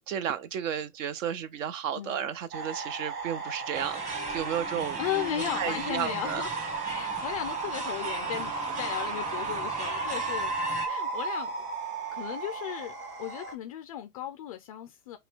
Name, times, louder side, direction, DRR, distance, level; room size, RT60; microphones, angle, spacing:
voice 1, 0.1-5.0 5.5-6.4, right 9 dB, 55° right, 0.8 m, -33 dB
sound 1, 2.5-13.5, right 4 dB, 75° right, 1.9 m, -34 dB
sound 2, 3.7-10.9, right 2 dB, 15° right, 1.2 m, -38 dB
voice 2, 5.0-11.6 12.1-15.2, left 12 dB, 25° left, 0.3 m, -36 dB
5.7 x 2.3 x 3.4 m
hypercardioid pair, 110°, 46 cm